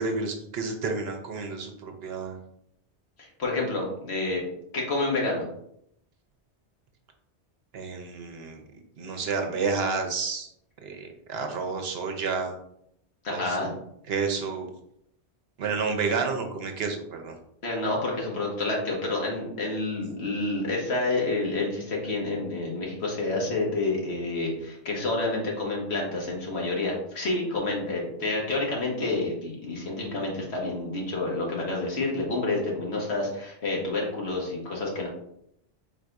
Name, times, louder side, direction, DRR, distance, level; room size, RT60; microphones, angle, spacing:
voice 1, 0.0-2.4 7.7-8.6 9.0-10.5 10.8-12.5 13.3-13.8 14.1-14.7 15.6-17.3, right 4 dB, 65° right, 3 dB, 0.9 m, -30 dB
voice 2, 3.4-4.4 4.7-5.4 13.2-13.7 17.6-35.1, left 2 dB, 70° left, -2 dB, 1.5 m, -29 dB
4.0 x 2.6 x 4.5 m, 0.73 s
omnidirectional pair, 1.1 m